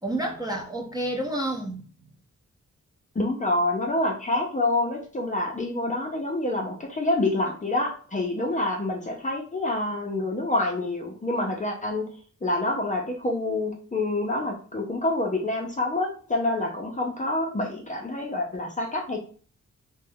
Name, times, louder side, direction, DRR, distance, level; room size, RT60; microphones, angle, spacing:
voice 1, 0.0-2.1, right 1 dB, 15° right, -1 dB, 0.7 m, -30 dB
voice 2, 3.1-12.1 12.4-19.2, left 2 dB, 25° left, 0 dB, 0.6 m, -27 dB
2.4 x 2.2 x 3.5 m, 0.42 s
cardioid pair, 90°, 30 cm